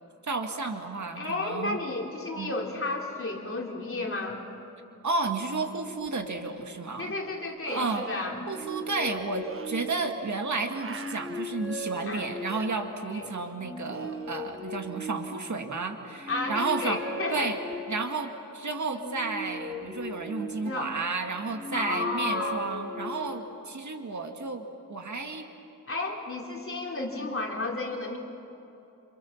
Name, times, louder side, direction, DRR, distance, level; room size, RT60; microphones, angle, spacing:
voice 1, 0.2-1.8 2.4-2.5 5.0-7.1 7.7-8.0 8.5-17.0 17.3-17.6 17.9-25.5, right 3 dB, 60° right, 4 dB, 2.1 m, -32 dB
voice 2, 1.2-4.4 7.0-8.4 12.0-12.3 13.1-13.3 16.3-17.5 20.6-20.9 21.7-22.6 25.9-28.2, left 2 dB, 40° left, 0 dB, 3.4 m, -32 dB
sound 1, 6.1-6.2 7.7-8.3 9.4-9.7 10.7-11.5 12.5-12.7 13.9-14.6 17.7-17.8, right 5 dB, 40° right, 0.7 m, -42 dB
sound 2, 8.2-10.3 10.8-12.9 13.5-15.7 16.2-18.2 18.9-21.0 21.5-23.5, left 1 dB, ahead, 4.9 m, -38 dB
28.0 x 26.5 x 7.3 m, 2.9 s
wide cardioid pair, 95°, 33 cm